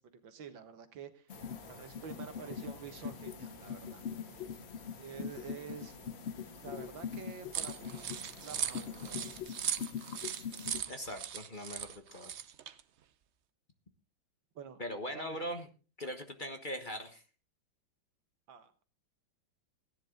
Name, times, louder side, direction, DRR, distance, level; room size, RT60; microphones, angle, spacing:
voice 1, 0.0-4.1 5.0-6.0 6.6-9.4 14.6-14.8 15.1-15.4 18.5-18.8, right 7 dB, 85° right, 9 dB, 2.1 m, -48 dB
sound 1, 1.3-9.4, equal, 80° left, 8.4 m, -54 dB
sound 2, 1.3-10.8, left 7 dB, 65° left, 0.6 m, -43 dB
sound 3, 7.5-12.8, right 9 dB, 65° right, 0.7 m, -39 dB
voice 2, 10.9-12.3 14.8-15.7 16.0-17.2, equal, 30° left, 7 dB, 1.3 m, -40 dB
16.5 x 10.5 x 3.9 m, 0.35 s
omnidirectional pair, 2.0 m